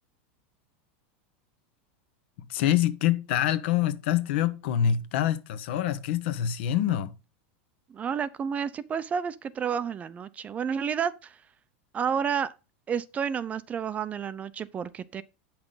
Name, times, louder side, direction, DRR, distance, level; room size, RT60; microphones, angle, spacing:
voice 1, 2.5-7.1, left 10 dB, 70° left, 1.0 m, -25 dB
voice 2, 7.9-11.3 11.9-12.5 12.9-15.2, right 7 dB, 20° right, 0.5 m, -30 dB
8.6 x 6.0 x 3.9 m
supercardioid pair, 140°, 6 cm